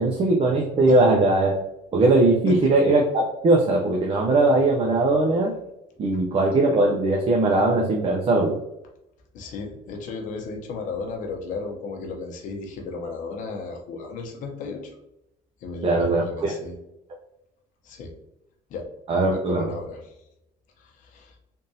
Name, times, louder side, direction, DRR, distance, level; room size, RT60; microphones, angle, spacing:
voice 1, 0.0-1.6 1.9-5.6 6.0-8.6 15.8-16.6 19.1-19.7, right 2 dB, 40° right, -1 dB, 0.7 m, -20 dB
voice 2, 9.3-15.0 15.6-16.8 17.8-18.1 18.7-18.9 19.3-20.2 20.8-21.3, left 4 dB, 60° left, 3 dB, 0.8 m, -34 dB
3.6 x 2.5 x 2.7 m, 0.85 s
supercardioid pair, 90°, 15 cm